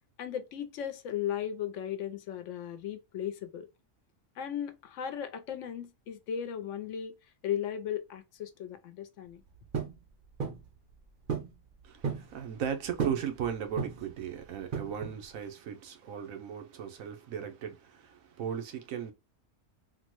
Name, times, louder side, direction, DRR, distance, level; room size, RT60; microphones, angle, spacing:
voice 1, 0.2-3.7 4.4-7.1 7.4-9.4, left 9 dB, 75° left, 0.9 m, -36 dB
sound 1, 9.7-10.0 10.4-10.7 11.3-11.5 11.8-12.3 13.0-13.3 13.8-14.1 14.7-15.2, right 6 dB, 50° right, 0.6 m, -33 dB
voice 2, 11.8-19.1, right 8 dB, 90° right, 1.1 m, -37 dB
3.7 x 2.1 x 2.9 m
omnidirectional pair, 1.4 m